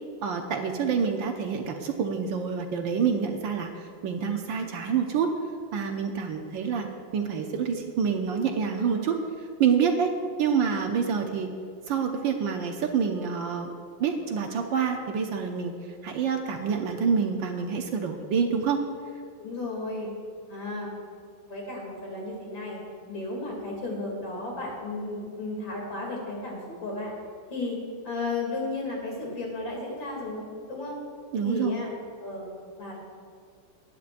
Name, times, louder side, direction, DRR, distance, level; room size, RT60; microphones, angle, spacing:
voice 1, 0.2-5.3 5.7-6.9 7.1-9.2 9.6-10.1 10.4-11.5 11.9-13.7 14.0-15.7 16.0-18.8 31.3-31.8, right 6 dB, 70° right, 4 dB, 1.4 m, -27 dB
voice 2, 19.4-20.1 20.5-20.9 21.4-27.1 27.5-27.8 28.0-31.0 31.4-31.9 32.2-32.5 32.8-33.0, left 2 dB, 60° left, -2 dB, 3.4 m, -34 dB
20.0 x 9.6 x 2.5 m, 2.2 s
omnidirectional pair, 2.4 m